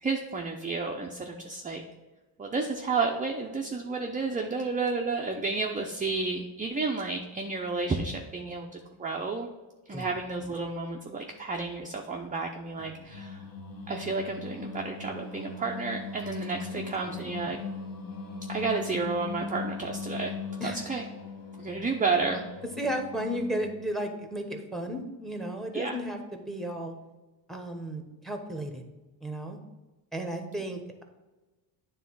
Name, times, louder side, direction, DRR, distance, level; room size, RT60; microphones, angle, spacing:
voice 1, 0.0-1.8 2.4-9.5 9.9-13.4 13.9-17.6 18.5-20.3 20.6-21.0 21.6-22.5 25.7-25.9, right 4 dB, 15° right, 1 dB, 0.6 m, -31 dB
Singing, 12.8-23.9, left 4 dB, 45° left, 1.3 m, -40 dB
voice 2, 16.7-17.3 20.6-20.8 22.8-26.9 27.5-28.8 29.2-29.6 30.1-31.0, equal, ahead, 5 dB, 1.0 m, -34 dB
9.3 x 3.4 x 4.6 m, 1.1 s
cardioid pair, 105°, 48 cm